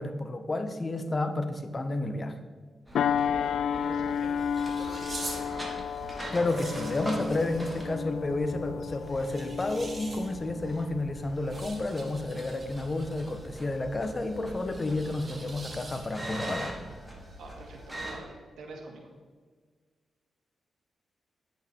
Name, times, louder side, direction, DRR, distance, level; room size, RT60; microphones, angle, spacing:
voice 1, 0.0-2.4 6.3-16.8, left 2 dB, 30° left, 8 dB, 1.2 m, -31 dB
sound 1, 2.9-11.8 12.3-12.5, left 8 dB, 85° left, 0.3 m, -33 dB
sound 2, 2.9-18.2, right 1 dB, 5° right, 3.3 m, -43 dB
voice 2, 3.3-5.6 14.7-14.8 17.4-19.1, right 2 dB, 90° right, 1 dB, 2.3 m, -46 dB
sound 3, 3.7-16.4, right 2 dB, 35° right, 2.1 m, -46 dB
10.5 x 8.7 x 4.6 m, 1.5 s
cardioid pair, 85°, 0 cm